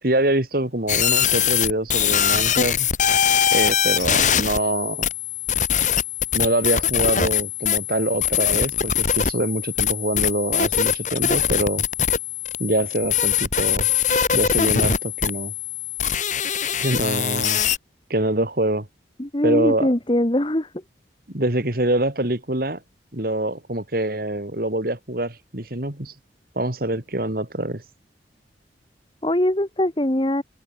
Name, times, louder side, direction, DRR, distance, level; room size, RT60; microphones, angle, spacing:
voice 1, 0.0-2.9 3.5-5.1 6.3-11.9 12.6-13.9 14.3-15.5 16.8-17.6 18.1-18.9 19.4-19.9 21.3-22.8 23.1-26.2 26.6-27.8, right 1 dB, 50° right, 2.6 m, -24 dB
sound 1, 0.9-17.8, left 8 dB, 40° left, 2.0 m, -22 dB
voice 2, 19.2-20.7 29.2-30.4, left 1 dB, 25° left, 1.4 m, -21 dB
open air
head